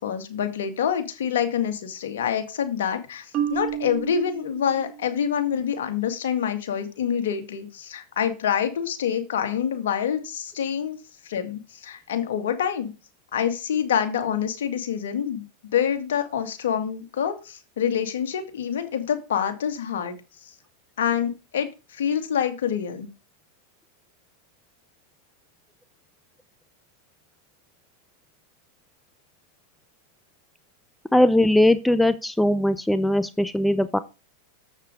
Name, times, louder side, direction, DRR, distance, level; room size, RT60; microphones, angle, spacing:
voice 1, 0.0-11.0 11.2-12.9 13.3-15.4 15.7-20.2 20.4-20.5 21.0-23.1, left 8 dB, 75° left, 7 dB, 2.0 m, -26 dB
Marimba xylophone, 3.3-5.4, right 10 dB, 45° right, 1.5 m, -31 dB
voice 2, 31.1-34.0, left 1 dB, 5° left, 13 dB, 0.6 m, -20 dB
7.8 x 6.6 x 4.9 m, 0.30 s
hypercardioid pair, 105°, 0 cm